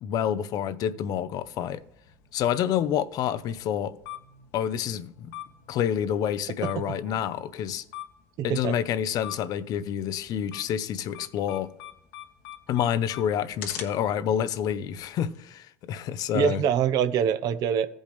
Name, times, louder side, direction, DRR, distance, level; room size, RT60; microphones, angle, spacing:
voice 1, 0.0-1.8 2.3-4.0 4.5-5.3 5.7-7.8 8.4-11.7 12.7-16.6, left 9 dB, 55° left, 0.6 m, -28 dB
sound 1, 1.4-15.4, left 10 dB, 70° left, 1.4 m, -45 dB
voice 2, 6.6-7.2 8.4-8.8 16.3-17.9, right 8 dB, 55° right, 0.8 m, -25 dB
15.5 x 5.3 x 3.5 m
hypercardioid pair, 85°, 8 cm